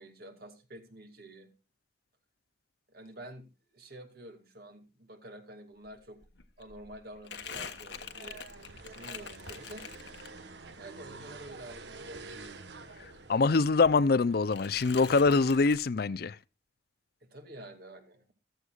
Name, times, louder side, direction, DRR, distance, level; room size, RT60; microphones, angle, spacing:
voice 1, 0.0-1.5 2.9-6.2 6.6-8.4 8.7-9.8 10.8-12.7 17.2-18.3, right 1 dB, 60° right, 2.6 m, -49 dB
Crumpling crinkling, 5.9-6.0 6.2-10.7 11.0-13.2 13.4-14.2 14.5-15.9, left 7 dB, 85° left, 1.3 m, -45 dB
sound 1, 7.3-15.7, right 3 dB, 75° right, 1.3 m, -49 dB
voice 2, 13.3-16.4, left 4 dB, 60° left, 0.5 m, -24 dB
14.5 x 14.0 x 2.4 m
head